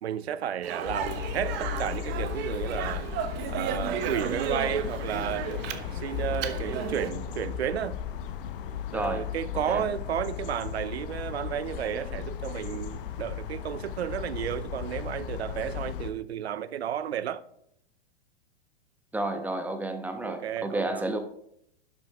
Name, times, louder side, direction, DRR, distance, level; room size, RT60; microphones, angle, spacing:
voice 1, 0.0-3.1 3.5-5.5 5.9-8.0 8.9-17.4 19.3-19.4 20.2-21.1, right 9 dB, 80° right, 0.7 m, -32 dB
Speech, 0.6-7.1, right 8 dB, 35° right, 1.0 m, -34 dB
sound 1, 0.8-16.1, left 8 dB, 55° left, 0.9 m, -36 dB
voice 2, 8.9-9.2 9.7-9.8 19.1-21.2, right 1 dB, 5° right, 1.0 m, -31 dB
11.5 x 6.2 x 3.5 m
hypercardioid pair, 120°, 31 cm